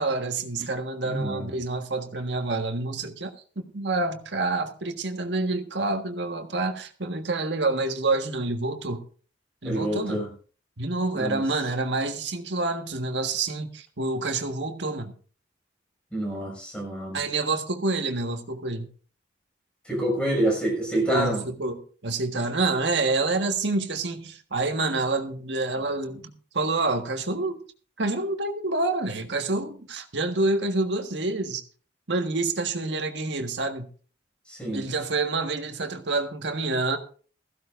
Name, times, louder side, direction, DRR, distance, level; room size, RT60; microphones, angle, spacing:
voice 1, 0.0-3.3 3.5-9.0 9.6-10.2 10.8-15.1 17.1-18.9 21.1-27.6 28.0-31.6 32.1-33.9 34.7-37.0, right 3 dB, 70° right, 1.6 m, -27 dB
voice 2, 1.0-1.5 9.6-10.3 11.1-11.4 16.1-17.2 19.8-21.4 34.5-34.8, right 1 dB, 5° left, 6.2 m, -27 dB
16.0 x 15.0 x 2.6 m
head